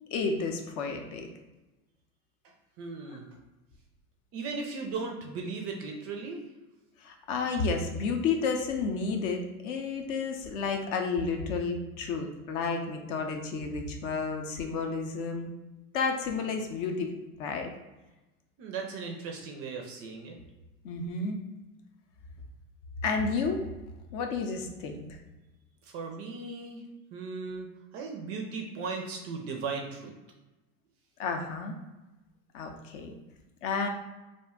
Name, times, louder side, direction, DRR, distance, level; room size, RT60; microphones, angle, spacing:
voice 1, 0.1-1.3 7.0-15.5 15.9-17.1 17.4-17.7 20.8-21.4 23.0-23.6 24.1-25.0 31.2-31.7 32.5-33.1 33.6-33.9, left 4 dB, 55° left, 4 dB, 0.6 m, -31 dB
voice 2, 2.8-3.3 4.3-6.4 18.6-20.4 25.8-26.8 27.1-27.7 27.9-30.1, right 4 dB, 35° right, 2 dB, 0.4 m, -37 dB
2.5 x 2.1 x 3.4 m, 1.1 s
hypercardioid pair, 100°, 45 cm